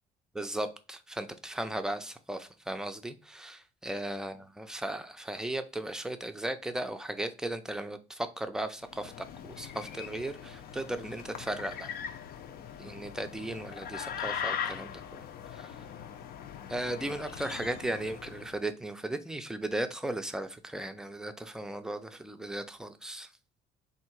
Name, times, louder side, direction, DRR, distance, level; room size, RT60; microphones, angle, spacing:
voice 1, 0.3-11.9 12.8-15.2 15.5-15.8 16.7-23.3, right 1 dB, 5° right, 0.4 m, -36 dB
sound 1, 8.8-18.6, left 8 dB, 65° left, 0.6 m, -40 dB
3.6 x 2.7 x 4.4 m
cardioid pair, 110°, 17 cm